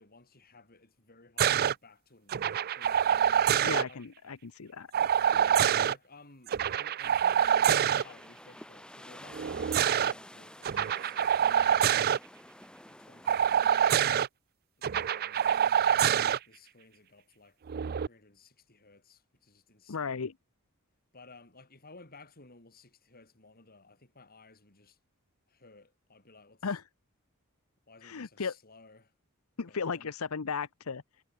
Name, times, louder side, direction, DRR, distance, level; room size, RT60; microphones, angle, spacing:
voice 1, 0.0-3.2 3.9-4.0 5.3-11.9 12.9-14.2 14.8-17.6 18.0-20.3 21.1-25.0 25.5-26.7 27.9-29.1 29.7-30.1, left 3 dB, 45° left, 4.9 m, -56 dB
sound 1, 1.4-1.7 2.3-3.8 4.9-5.9 6.5-8.0 9.3-10.1 10.6-12.2 13.3-14.3 14.8-16.4 17.7-18.1, right 9 dB, 45° right, 0.4 m, -26 dB
voice 2, 3.6-4.9 19.9-20.3 26.6-26.9 28.0-28.6 29.6-31.0, left 5 dB, 75° left, 0.8 m, -35 dB
sound 2, 7.6-13.7, left 1 dB, 5° left, 2.2 m, -50 dB
head